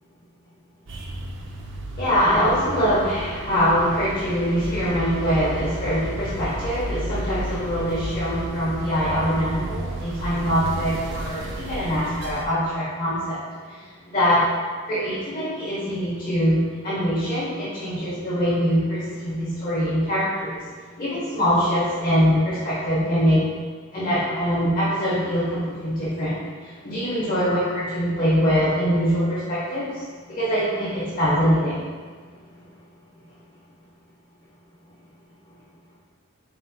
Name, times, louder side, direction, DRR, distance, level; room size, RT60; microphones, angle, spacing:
sound 1, 0.9-12.4, right 1 dB, 60° right, 0.5 m, -33 dB
voice 1, 1.9-13.4 13.6-14.4 14.9-23.4 23.9-31.9, equal, 40° left, -10 dB, 1.0 m, -23 dB
4.4 x 4.1 x 2.2 m, 1.5 s
head